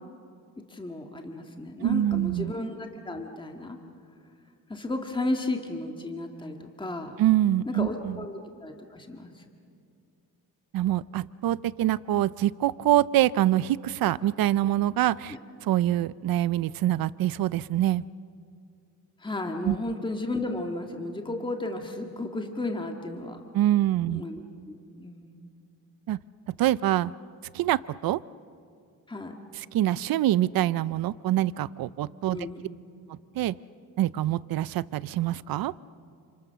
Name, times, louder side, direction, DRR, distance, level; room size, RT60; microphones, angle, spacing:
voice 1, 0.7-3.8 4.7-7.2 7.7-9.4 15.3-15.4 19.2-23.4 24.1-25.3 29.1-29.3 32.3-32.8, left 2 dB, 15° left, 3 dB, 1.9 m, -34 dB
voice 2, 1.8-2.5 7.2-8.2 10.7-15.4 15.6-18.0 19.6-19.7 23.5-24.2 26.1-26.2 26.6-27.1 27.5-28.2 29.6-32.4 33.4-33.5 34.0-35.7, right 13 dB, 75° right, 18 dB, 0.6 m, -25 dB
30.0 x 27.0 x 6.9 m, 2.4 s
cardioid pair, 125°, 35 cm